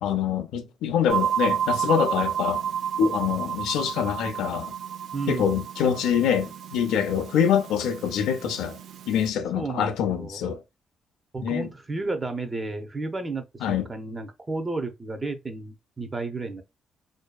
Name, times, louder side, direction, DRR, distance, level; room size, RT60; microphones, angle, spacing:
voice 1, 0.0-2.7 3.0-4.7 5.3-8.8 9.1-10.6 11.4-11.7 13.6-13.9, left 8 dB, 85° left, 0.4 m, -25 dB
sound 1, 1.1-9.3, right 8 dB, 70° right, 0.3 m, -31 dB
voice 2, 5.1-5.6 9.5-10.4 11.3-16.6, right 3 dB, 25° right, 0.6 m, -32 dB
2.6 x 2.2 x 2.2 m
cardioid pair, 90°, 0 cm